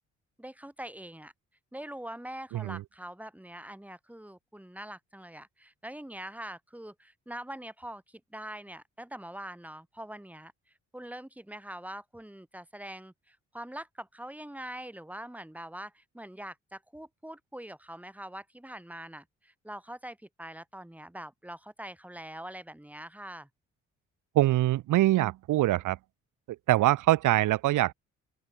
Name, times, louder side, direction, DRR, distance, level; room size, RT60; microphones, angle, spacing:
voice 1, 0.4-1.3 1.7-10.5 10.9-23.5, right 1 dB, 5° right, 7.0 m, -43 dB
voice 2, 24.3-26.0 26.7-27.9, right 15 dB, 85° right, 2.9 m, -24 dB
open air
cardioid pair, 90°, 30 cm